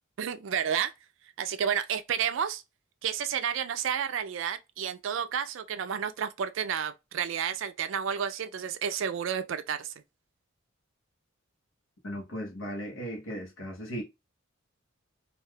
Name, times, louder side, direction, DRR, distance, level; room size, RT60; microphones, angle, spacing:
voice 1, 0.2-0.9 1.4-2.6 3.0-9.9, right 8 dB, 65° right, 0.4 m, -31 dB
voice 2, 12.0-14.0, equal, 70° left, 0.9 m, -37 dB
3.3 x 2.4 x 2.3 m
head